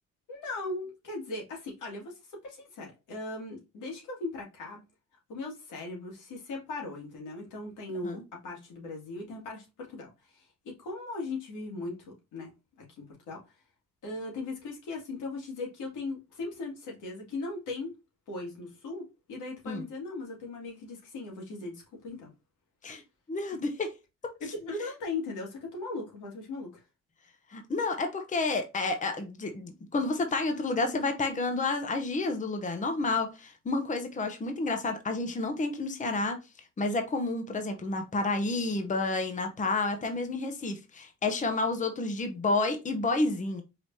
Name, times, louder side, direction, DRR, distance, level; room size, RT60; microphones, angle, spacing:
voice 1, 0.3-2.1 2.4-4.8 5.3-12.0 12.3-12.5 12.8-13.4 14.0-17.9 18.3-22.3 24.5-26.8, left 3 dB, 85° left, 2.1 m, -38 dB
voice 2, 23.3-23.9 27.5-36.4 36.8-43.6, left 3 dB, 25° left, 0.8 m, -30 dB
4.9 x 3.4 x 2.7 m
cardioid pair, 90°, 30 cm